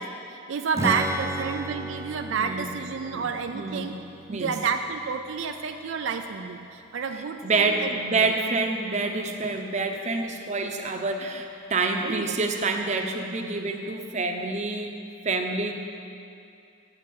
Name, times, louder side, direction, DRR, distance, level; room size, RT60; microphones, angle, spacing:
voice 1, 0.0-3.9 4.3-8.3 12.0-12.4, right 5 dB, 75° right, 6 dB, 0.4 m, -30 dB
Strum, 0.7-6.4, right 1 dB, 15° right, 0.4 m, -36 dB
voice 2, 2.4-2.7 3.1-3.9 4.3-4.5 7.4-15.0 15.2-15.8, right 3 dB, 35° right, 3 dB, 0.7 m, -27 dB
8.1 x 6.9 x 8.2 m, 2.6 s
head